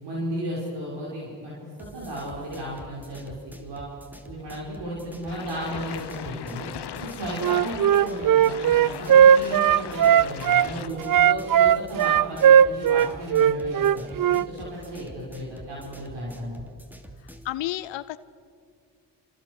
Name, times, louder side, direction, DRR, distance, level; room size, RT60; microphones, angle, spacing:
voice 1, 0.0-3.8 4.2-6.7 7.0-16.6, equal, 70° right, -5 dB, 6.2 m, -34 dB
sound 1, 1.8-17.5, equal, 5° right, 2.9 m, -47 dB
sound 2, 5.3-10.9, left 10 dB, 65° left, 1.1 m, -39 dB
Wind instrument woodwind instrument, 7.4-10.7 11.0-14.5, right 9 dB, 50° right, 0.6 m, -17 dB
voice 2, 17.4-18.2, left 15 dB, 90° left, 15 dB, 0.7 m, -30 dB
29.5 x 27.0 x 6.5 m, 2.4 s
supercardioid pair, 55°, 43 cm